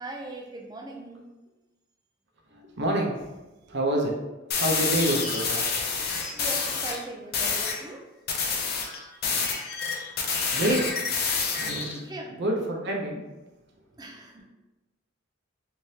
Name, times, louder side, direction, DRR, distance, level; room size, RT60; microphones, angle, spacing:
voice 1, 0.0-1.3 6.1-8.1 12.0-12.4 14.0-14.5, right 1 dB, 20° right, 0 dB, 0.5 m, -40 dB
voice 2, 2.5-3.3 3.7-4.1 4.5-6.0 10.5-11.0 11.6-12.0 12.3-13.2, right 1 dB, 60° right, 0 dB, 0.7 m, -28 dB
sound 1, 4.5-7.0 7.3-7.8 8.3-12.0, left 5 dB, 50° left, 0.6 m, -28 dB
3.4 x 3.2 x 2.8 m, 1.1 s
head